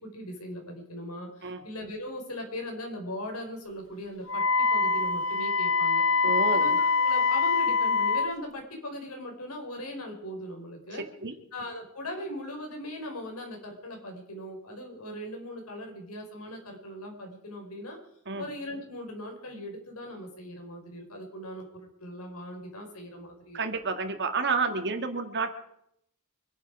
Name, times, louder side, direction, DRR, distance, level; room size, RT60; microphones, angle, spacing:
voice 1, 0.0-4.4 4.7-6.0 6.5-11.0 11.5-18.0 18.4-23.6, equal, 85° left, 2 dB, 5.2 m, -39 dB
Wind instrument woodwind instrument, 4.3-8.3, left 4 dB, 60° left, 0.7 m, -24 dB
voice 2, 6.2-6.7 10.9-11.3 18.3-18.5 23.5-25.5, right 4 dB, 55° right, 7 dB, 1.9 m, -30 dB
25.5 x 11.0 x 4.8 m, 0.74 s
head